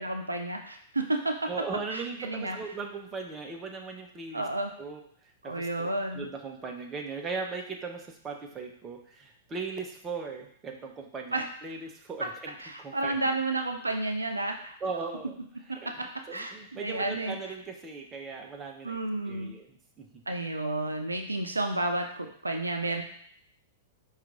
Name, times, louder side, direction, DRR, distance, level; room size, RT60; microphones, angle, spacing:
voice 1, 0.0-1.4 1.9-2.6 4.3-4.7 5.4-6.3 11.3-11.5 12.6-14.7 16.3-17.4 18.8-19.6 20.3-23.0, right 2 dB, 80° right, 4 dB, 0.4 m, -31 dB
voice 2, 1.5-4.4 4.8-5.0 5.4-5.9 6.1-13.4 14.8-15.4 15.8-19.0 19.3-20.2 22.9-23.0, right 4 dB, 20° right, 2 dB, 0.6 m, -38 dB
4.5 x 2.4 x 3.8 m, 0.63 s
figure-of-eight pair, 100°, 0 cm